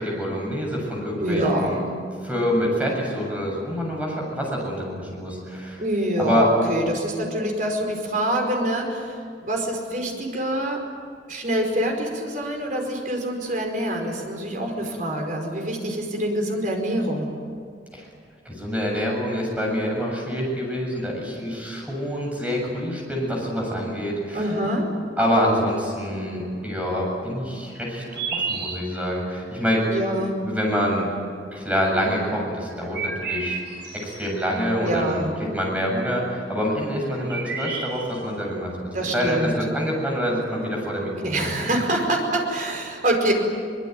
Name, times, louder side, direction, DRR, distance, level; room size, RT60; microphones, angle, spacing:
voice 1, 0.0-1.9 2.2-5.8 6.2-6.5 17.9-18.1 18.4-24.5 25.2-31.1 31.5-33.6 33.9-35.2 35.5-41.5, equal, 10° right, -1 dB, 7.5 m, -26 dB
voice 2, 1.2-1.9 5.8-10.9 11.3-17.4 24.3-25.0 29.9-30.4 34.8-35.3 38.9-39.5 41.2-43.3, right 1 dB, 50° right, 2 dB, 4.9 m, -25 dB
sound 1, 27.9-29.2 31.2-31.3 32.6-34.3 36.7-36.8 37.0-38.3, right 4 dB, 70° right, 5.7 m, -31 dB
24.0 x 21.5 x 9.5 m, 2.2 s
head